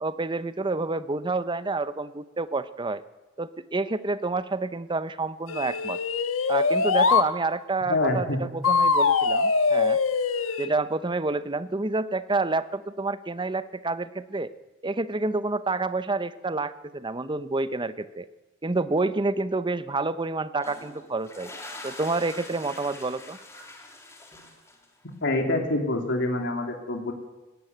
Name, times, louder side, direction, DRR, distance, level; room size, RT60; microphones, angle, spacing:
voice 1, 0.0-3.0 3.4-6.0 6.5-10.0 10.6-14.5 14.8-18.3 18.6-21.5 21.8-23.4, right 3 dB, 25° right, 14 dB, 0.8 m, -28 dB
sound 1, 5.5-7.3 8.6-10.7, left 5 dB, 80° left, 1.3 m, -23 dB
voice 2, 7.9-8.4 25.2-27.1, left 2 dB, 60° left, 3 dB, 2.9 m, -26 dB
sound 2, 20.5-25.1, left 2 dB, 15° left, 3.2 m, -43 dB
19.0 x 16.5 x 9.2 m, 1.1 s
head